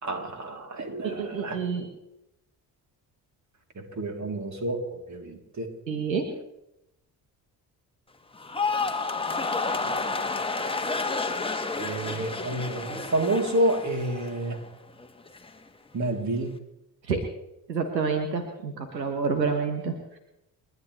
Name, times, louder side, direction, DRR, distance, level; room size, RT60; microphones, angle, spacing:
voice 1, 0.0-1.6 3.7-5.7 9.7-10.7 11.8-14.6 15.9-16.5, right 1 dB, 35° right, 3 dB, 3.3 m, -30 dB
voice 2, 1.0-1.9 5.9-6.3 12.1-12.3 17.1-17.3 17.7-20.2, right 5 dB, 80° right, 6 dB, 1.4 m, -28 dB
sound 1, 8.3-14.7 15.0-15.5, left 3 dB, 10° left, 1.5 m, -30 dB
30.0 x 11.0 x 3.3 m, 0.86 s
figure-of-eight pair, 45°, 50 cm